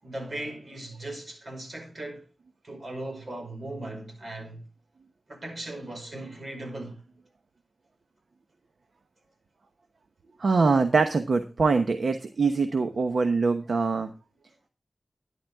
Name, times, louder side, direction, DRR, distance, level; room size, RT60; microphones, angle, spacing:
voice 1, 0.0-2.3 2.6-4.6 5.3-7.0, right 1 dB, 65° right, 5.3 m, -38 dB
voice 2, 10.4-14.1, right 4 dB, 80° right, 1.0 m, -23 dB
12.0 x 10.5 x 3.5 m
cardioid pair, 50°, 0 cm